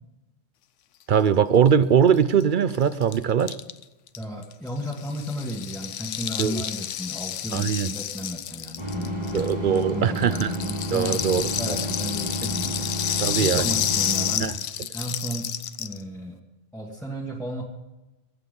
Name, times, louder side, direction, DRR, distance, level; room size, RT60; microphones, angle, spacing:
voice 1, 1.1-3.5 6.4-6.6 7.5-7.9 9.3-10.6 10.9-11.8 13.2-13.6 14.4-14.6, right 7 dB, 55° right, 15 dB, 0.6 m, -21 dB
Rattle (instrument), 2.1-2.2 2.4-2.5 2.7-9.8 10.1-16.0, left 10 dB, 80° left, 1.0 m, -30 dB
voice 2, 4.2-14.5 14.9-16.4 16.7-17.6, equal, ahead, -4 dB, 1.7 m, -34 dB
sound 1, 8.8-14.3, right 1 dB, 35° right, 2.5 m, -31 dB
22.5 x 8.5 x 5.3 m, 1.0 s
omnidirectional pair, 1.3 m